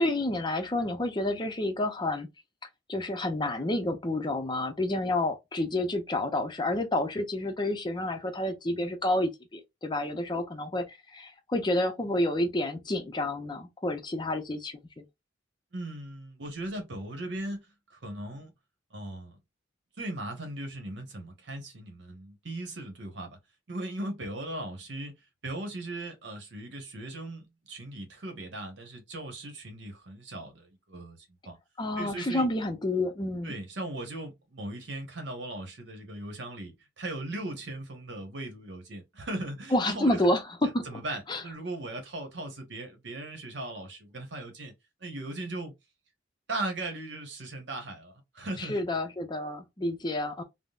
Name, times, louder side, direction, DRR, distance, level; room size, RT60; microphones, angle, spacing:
voice 1, 0.0-2.3 2.9-15.0 31.8-33.6 39.7-40.9 41.3-41.4 48.6-50.4, left 1 dB, 25° left, 0.5 m, -29 dB
voice 2, 15.7-17.6 17.9-18.5 18.9-19.4 20.0-23.4 23.7-25.1 25.4-31.6 32.0-32.5 33.4-40.2 40.8-44.7 45.0-45.8 46.5-48.8, right 2 dB, 70° right, 1.0 m, -38 dB
3.6 x 2.0 x 2.3 m
head